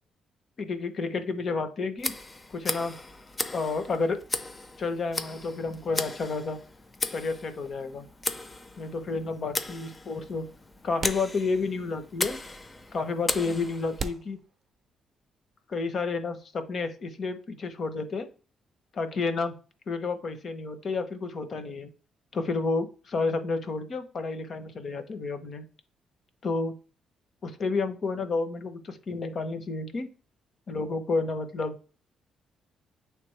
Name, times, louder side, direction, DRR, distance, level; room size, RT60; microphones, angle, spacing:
voice 1, 0.6-2.1 2.5-3.0 3.5-4.2 4.8-6.6 7.1-8.1 8.8-10.5 10.8-12.4 12.9-14.4 15.7-18.3 18.9-19.5 19.9-21.9 22.3-25.6 26.4-26.8 27.4-30.1 30.7-31.8, left 4 dB, 50° left, 9 dB, 1.0 m, -30 dB
Tick, 2.0-14.0, left 2 dB, 25° left, 0.6 m, -36 dB
sound 1, 11.0-11.9 12.2-12.3 13.1-13.2 14.0-15.2, right 5 dB, 45° right, 0.6 m, -39 dB
8.4 x 3.4 x 3.3 m, 0.37 s
cardioid pair, 90°, 0 cm